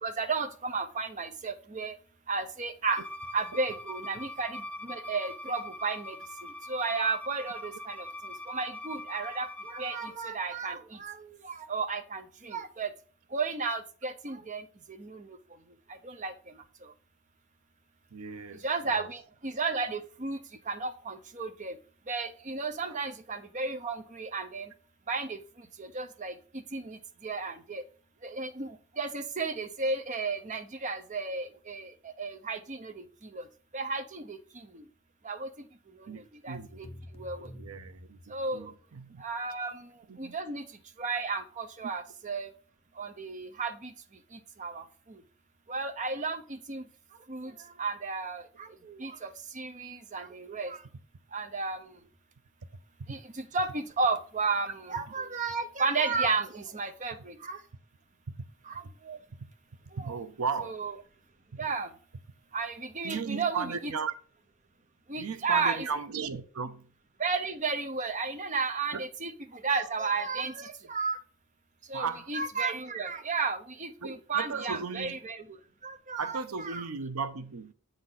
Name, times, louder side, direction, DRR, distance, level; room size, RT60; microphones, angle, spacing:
voice 1, 0.0-1.9 2.3-3.0 3.3-6.2 6.7-12.9 13.3-14.6 15.0-15.3 16.0-16.3 18.6-20.4 20.7-21.8 22.1-24.7 25.1-25.4 25.8-27.8 28.2-31.9 32.2-33.0 33.3-33.4 33.7-34.4 34.7-34.8 35.2-35.5 36.4-36.6 37.2-37.5 38.3-38.7 39.2-39.9 40.2-40.6 41.0-42.5 43.0-43.9 44.6-44.8 45.7-46.8 47.3-47.5 47.8-50.8 51.3-51.8 53.1-57.6 58.7-59.2 60.0-60.1 60.6-60.9 61.6-61.9 62.5-63.7 65.1-65.8 67.2-69.3 69.6-71.2 71.9-75.4 75.8-76.4 76.7-76.8, right 4 dB, 35° right, 0.8 m, -33 dB
Bowed string instrument, 2.9-10.2, left 1 dB, 5° left, 0.3 m, -42 dB
voice 2, 18.1-19.1 22.8-23.1 36.1-36.9 37.5-39.2 40.1-40.4 53.0-53.2 55.2-55.3 58.3-58.4 60.0-60.8 63.0-64.1 65.2-66.9 68.9-69.0 71.9-72.3 74.0-75.2 76.2-77.7, right 5 dB, 85° right, 0.6 m, -36 dB
sound 1, 36.5-38.8, left 1 dB, 25° left, 0.9 m, -49 dB
8.4 x 3.9 x 5.7 m
head